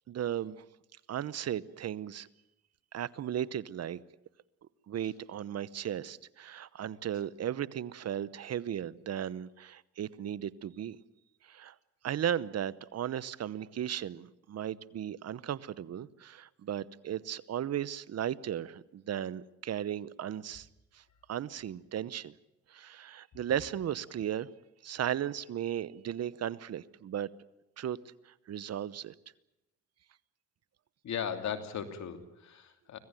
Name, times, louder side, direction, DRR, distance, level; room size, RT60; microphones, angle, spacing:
voice 1, 0.1-0.6 1.1-2.3 2.9-4.0 4.9-11.0 11.4-11.7 12.0-20.7 20.9-21.0 21.3-22.3 22.7-24.5 24.8-27.3 27.8-28.0 28.3-29.1, right 10 dB, 55° right, 18 dB, 0.9 m, -36 dB
voice 2, 31.0-33.0, left 8 dB, 65° left, 7 dB, 3.0 m, -37 dB
25.5 x 17.0 x 9.1 m, 0.88 s
cardioid pair, 90°, 30 cm